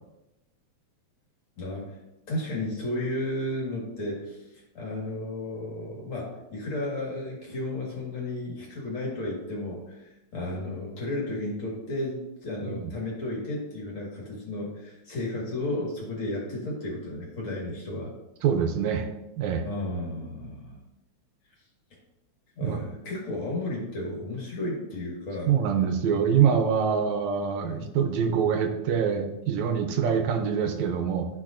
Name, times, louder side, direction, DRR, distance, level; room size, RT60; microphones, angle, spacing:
voice 1, 1.6-2.0 2.3-18.1 19.6-20.8 22.6-25.5 26.1-26.3 27.6-27.9, left 1 dB, 50° left, -3 dB, 2.3 m, -33 dB
voice 2, 18.4-19.1 19.4-19.6 22.6-22.8 25.5-31.3, right 7 dB, 80° right, 6 dB, 1.9 m, -25 dB
13.5 x 4.6 x 2.5 m, 0.95 s
omnidirectional pair, 3.3 m